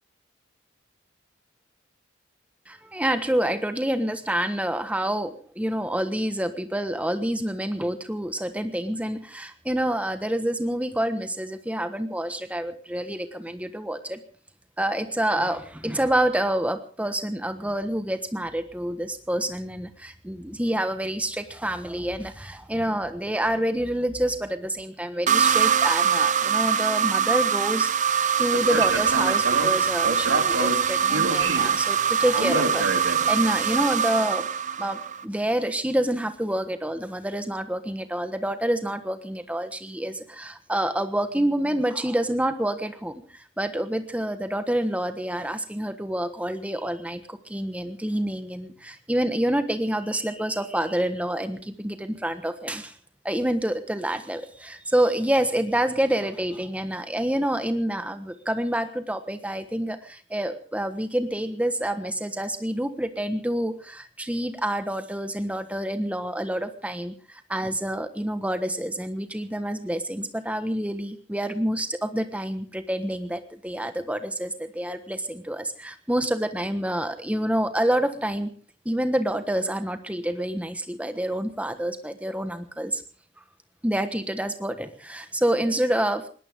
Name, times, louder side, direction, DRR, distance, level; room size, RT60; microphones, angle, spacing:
voice 1, 2.7-14.2 14.8-34.5 34.8-52.9 53.2-78.5 78.8-83.0 83.8-86.3, right 1 dB, 5° right, 9 dB, 1.3 m, -27 dB
sound 1, 25.3-35.2, right 7 dB, 40° right, 0.7 m, -23 dB
Speech, 28.5-33.6, right 2 dB, 80° right, 3.0 m, -28 dB
21.0 x 18.0 x 3.7 m, 0.40 s
head